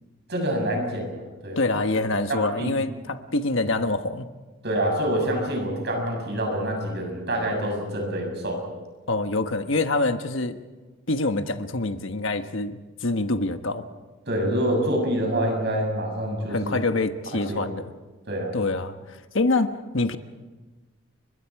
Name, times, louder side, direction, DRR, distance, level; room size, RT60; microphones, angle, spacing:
voice 1, 0.3-1.6 2.3-2.7 4.6-8.6 14.3-16.8 17.3-17.6 18.3-18.5, right 1 dB, 55° right, 1 dB, 7.4 m, -26 dB
voice 2, 1.6-4.3 9.1-10.6 11.1-13.8 16.5-17.8 18.5-18.9 19.3-20.2, left 2 dB, 70° left, 8 dB, 1.3 m, -25 dB
30.0 x 24.0 x 4.8 m, 1.2 s
head